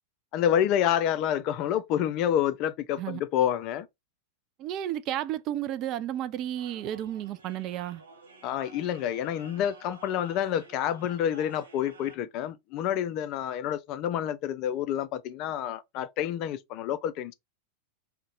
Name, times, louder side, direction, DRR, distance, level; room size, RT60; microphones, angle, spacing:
voice 1, 0.3-3.9 8.4-17.3, left 10 dB, 40° left, 0.3 m, -28 dB
voice 2, 4.6-8.0, right 12 dB, 35° right, 0.3 m, -32 dB
sound 1, 6.6-12.2, right 5 dB, 70° right, 0.6 m, -52 dB
2.6 x 2.1 x 3.8 m
figure-of-eight pair, 90°, 0 cm